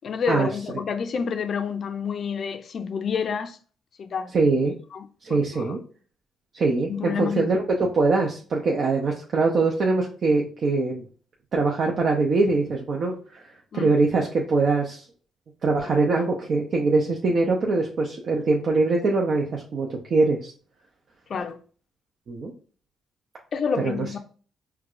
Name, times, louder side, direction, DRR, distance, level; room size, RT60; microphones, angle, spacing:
voice 1, 0.0-3.6 4.0-4.3 4.9-5.8 6.9-7.5 13.7-14.0 21.3-21.6 23.5-24.2, left 6 dB, 55° left, 0.4 m, -29 dB
voice 2, 4.3-4.8 5.2-5.8 6.5-11.0 11.5-13.5 13.8-15.0 15.6-20.5 22.3-22.5 23.8-24.2, right 3 dB, 55° right, 0.6 m, -23 dB
4.5 x 2.3 x 2.4 m
cardioid pair, 90°, 0 cm